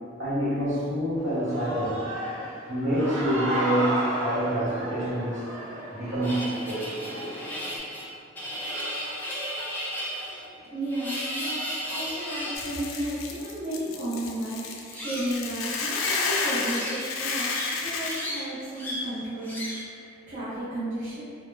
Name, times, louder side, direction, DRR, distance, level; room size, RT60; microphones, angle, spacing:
voice 1, 0.2-2.0 2.7-5.5 5.9-7.2, right 1 dB, 70° right, -10 dB, 1.0 m, -27 dB
Human voice / Cheering, 1.2-7.8, right 1 dB, 85° right, 0.6 m, -33 dB
sound 1, 6.2-12.7 14.8-15.4 15.9-17.1 17.3-18.4 18.8-19.1 19.4-19.9, equal, 10° left, 0.4 m, -34 dB
voice 2, 10.7-21.2, right 1 dB, 40° right, -12 dB, 0.5 m, -33 dB
Hiss / Boiling, 12.5-18.2, left 4 dB, 90° left, 0.3 m, -31 dB
2.1 x 2.0 x 3.1 m, 2.4 s
head